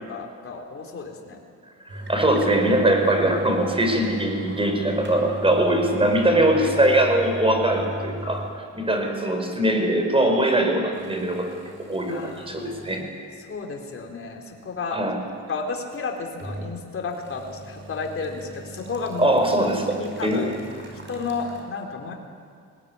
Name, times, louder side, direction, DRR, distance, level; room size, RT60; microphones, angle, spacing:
voice 1, 0.1-1.4 12.1-13.0 13.4-15.0 15.5-19.4 19.9-20.5 21.1-22.1, left 4 dB, 45° left, 1 dB, 3.8 m, -32 dB
voice 2, 1.9-8.4 8.7-11.6 11.9-12.2 12.5-13.0 14.9-15.2 19.2-20.6, right 1 dB, 20° right, 3 dB, 5.3 m, -21 dB
sound 1, 1.9-8.6 8.9-9.0 9.7-9.8 10.9-13.1 13.5-13.6 15.7-16.8 17.1-21.6, right 1 dB, 40° right, 5.5 m, -38 dB
20.5 x 19.0 x 9.7 m, 2.2 s
cardioid pair, 90°, 30 cm